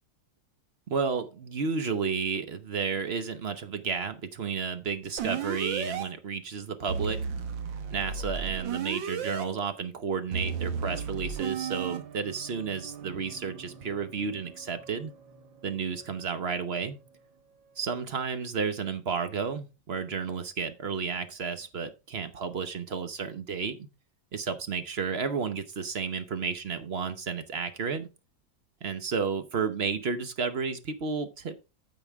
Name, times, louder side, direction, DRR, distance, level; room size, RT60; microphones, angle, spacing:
voice 1, 0.9-7.2 7.9-15.1 15.6-17.0 17.8-23.9 24.3-28.1 28.8-31.6, right 5 dB, 50° right, 10 dB, 0.7 m, -32 dB
sound 1, 5.2-6.0 6.9-9.4 10.3-12.0, right 6 dB, 75° right, 1.7 m, -33 dB
sound 2, 10.7-18.1, right 8 dB, 90° right, 1.8 m, -48 dB
9.5 x 7.2 x 3.4 m, 0.28 s
omnidirectional pair, 2.1 m